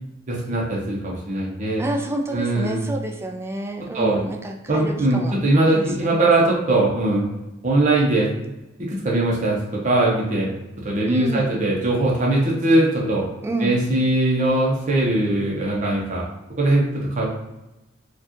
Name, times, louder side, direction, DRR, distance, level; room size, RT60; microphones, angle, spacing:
voice 1, 0.3-1.8 2.3-2.8 3.9-4.2 4.7-7.3 7.6-8.3 8.8-9.6 9.8-10.5 10.8-13.2 13.6-16.2 16.6-17.3, right 2 dB, 40° right, -3 dB, 0.7 m, -20 dB
voice 2, 1.8-5.4 5.7-6.5 11.1-11.5 13.4-13.8, right 1 dB, 15° right, 2 dB, 0.3 m, -28 dB
4.4 x 2.4 x 2.9 m, 0.97 s
head